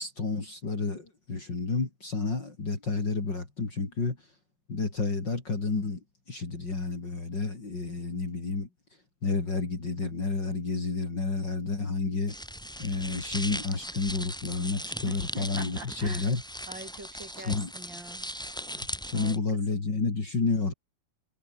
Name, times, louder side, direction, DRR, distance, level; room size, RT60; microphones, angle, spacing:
voice 1, 0.0-4.2 4.7-8.7 9.2-12.3 12.8-16.4 17.4-17.7 19.0-20.7, left 3 dB, 30° left, 4.2 m, -30 dB
sound 1, 12.3-19.4, equal, ahead, 4.4 m, -38 dB
voice 2, 15.1-16.3 16.7-18.3 19.1-19.3 19.7-19.8, right 2 dB, 35° right, 5.8 m, -43 dB
omnidirectional pair, 3.8 m